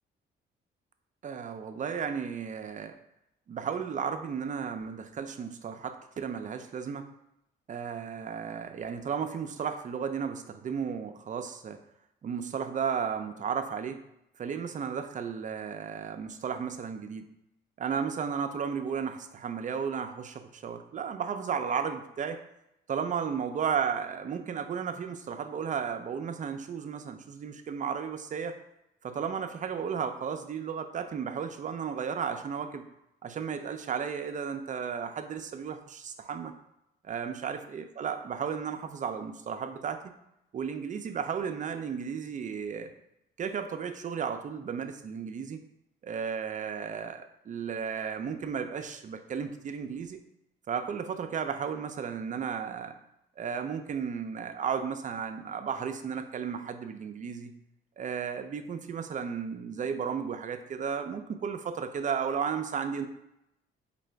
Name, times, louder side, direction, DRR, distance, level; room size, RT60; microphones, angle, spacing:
voice 1, 1.2-2.9 3.5-7.1 7.7-11.8 12.2-14.0 14.4-17.2 17.8-22.4 22.9-28.6 29.0-32.9 33.2-36.5 37.0-40.1 40.5-42.9 43.4-45.6 46.0-50.2 50.7-52.9 53.4-57.5 58.0-63.1, right 7 dB, 40° right, 7 dB, 0.5 m, -34 dB
4.5 x 2.5 x 3.3 m, 0.83 s
cardioid pair, 90°, 20 cm